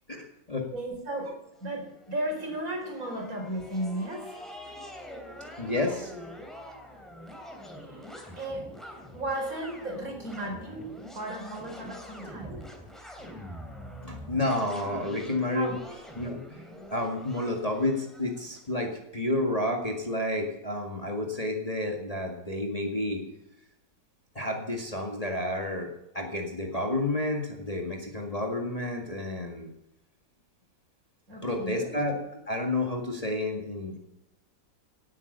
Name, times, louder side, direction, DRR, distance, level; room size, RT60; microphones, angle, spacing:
voice 1, 0.1-0.7 5.6-6.1 14.0-15.8 16.1-16.6 16.9-23.2 24.3-25.9 26.1-29.7 31.4-32.2 32.5-34.0, left 1 dB, 20° left, 2 dB, 1.8 m, -30 dB
voice 2, 0.7-4.4 7.8-8.1 8.4-8.7 9.1-12.7 15.5-15.8 31.3-31.9, right 1 dB, 50° right, 2 dB, 4.5 m, -35 dB
sound 1, 1.6-18.7, equal, ahead, 2.9 m, -45 dB
17.5 x 9.3 x 6.7 m, 0.84 s
omnidirectional pair, 1.9 m